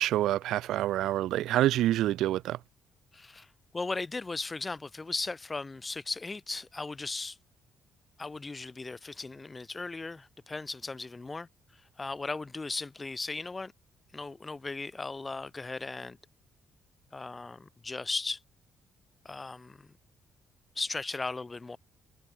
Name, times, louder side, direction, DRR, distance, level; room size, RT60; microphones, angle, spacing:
voice 1, 0.0-2.6, right 14 dB, 80° right, 1.0 m, -27 dB
voice 2, 3.1-3.5 3.7-7.4 8.2-11.5 12.0-13.7 14.1-16.2 17.1-18.4 19.3-19.9 20.8-21.8, left 3 dB, 25° left, 3.5 m, -37 dB
supercardioid pair, 70°, 0 cm